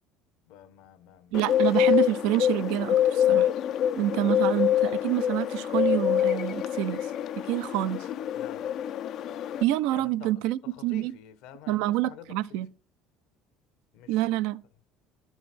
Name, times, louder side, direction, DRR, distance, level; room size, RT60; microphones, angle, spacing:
voice 1, 0.5-1.5 8.3-8.7 9.9-12.6 13.9-14.3, left 10 dB, 75° left, 0.9 m, -49 dB
Bird, 1.3-9.6, left 10 dB, 55° left, 0.3 m, -26 dB
voice 2, 1.3-3.5 3.9-7.1 7.5-8.0 9.6-11.1 11.7-12.7 14.1-14.6, right 14 dB, 75° right, 0.4 m, -27 dB
12.0 x 4.7 x 4.2 m
supercardioid pair, 90°, 0 cm